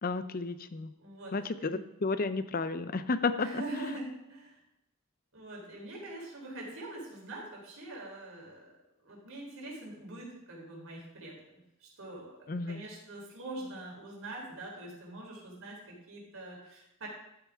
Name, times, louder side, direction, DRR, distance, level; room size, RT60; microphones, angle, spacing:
voice 1, 0.0-0.9 1.3-3.5 12.5-12.8, left 3 dB, 40° left, 12 dB, 0.6 m, -32 dB
voice 2, 1.0-1.8 3.4-4.6 5.3-8.7 9.0-17.1, right 2 dB, 70° right, -2 dB, 3.8 m, -44 dB
13.0 x 8.8 x 3.6 m, 0.86 s
head